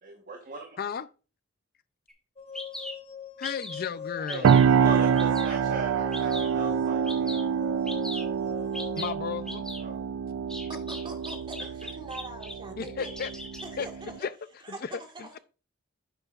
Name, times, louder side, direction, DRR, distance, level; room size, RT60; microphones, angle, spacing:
voice 1, 0.0-0.8 4.2-7.5 9.8-10.1, right 3 dB, 40° right, 1.2 m, -39 dB
Bird vocalization bird call bird song, 2.1-2.2 2.5-2.9 3.4-3.9 4.3-4.7 5.2-5.6 6.1-6.5 7.1-7.4 7.9-8.2 8.7-9.1 9.5-9.8 10.5-12.5 12.9-13.7, left 1 dB, 5° left, 1.6 m, -39 dB
sound 1, 2.4-9.1, left 8 dB, 30° left, 0.9 m, -41 dB
voice 2, 3.4-4.5 9.0-9.7 12.8-13.3 13.8-13.9 14.2-14.3 14.7-15.4, left 6 dB, 45° left, 0.5 m, -34 dB
sound 2, 4.4-14.2, right 7 dB, 70° right, 0.3 m, -26 dB
voice 3, 10.7-13.1 13.6-14.2 14.6-15.4, right 2 dB, 25° right, 1.7 m, -43 dB
9.7 x 8.0 x 2.5 m
head